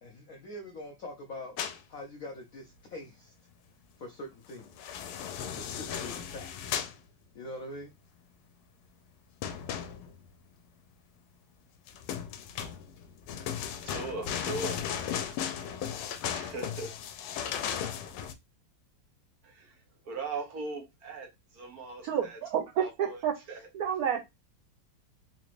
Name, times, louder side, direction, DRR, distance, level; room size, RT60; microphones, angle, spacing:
voice 1, 0.0-1.6 1.9-3.3 4.0-5.0 5.5-6.9 7.3-7.9, left 1 dB, 75° left, 0.8 m, -44 dB
sound 1, 1.6-1.8 4.6-7.0 9.4-10.3 11.9-18.3, left 8 dB, 90° left, 1.4 m, -36 dB
voice 2, 13.8-14.8 16.3-16.9 19.4-22.4 22.8-23.7, right 3 dB, 55° right, 1.3 m, -40 dB
voice 3, 22.0-23.3 23.7-24.2, right 8 dB, 75° right, 0.8 m, -29 dB
3.9 x 3.1 x 2.5 m
omnidirectional pair, 2.2 m